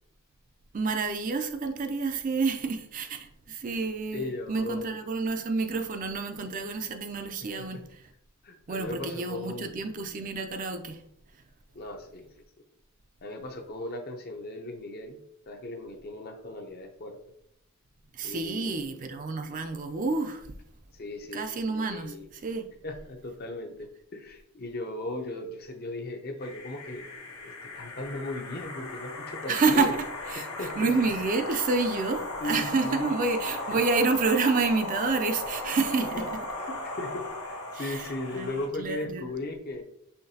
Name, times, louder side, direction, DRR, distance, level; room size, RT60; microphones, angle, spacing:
voice 1, 0.7-8.0 8.7-11.0 18.1-20.5 21.3-22.6 29.5-29.9 30.3-30.5 30.8-36.2 37.7-39.2, right 4 dB, 35° right, 0.4 m, -29 dB
voice 2, 4.1-5.0 7.7-7.8 8.4-9.9 11.7-12.3 13.2-15.2 15.5-17.2 18.2-19.0 20.9-21.5 21.9-22.3 22.8-27.1 27.4-30.0 30.4-30.9 32.4-33.1 33.7-33.8 36.0-36.3 36.6-39.8, left 2 dB, 45° left, 0.6 m, -37 dB
sound 1, 26.4-38.7, left 2 dB, 85° left, 1.1 m, -37 dB
5.7 x 3.2 x 2.7 m
head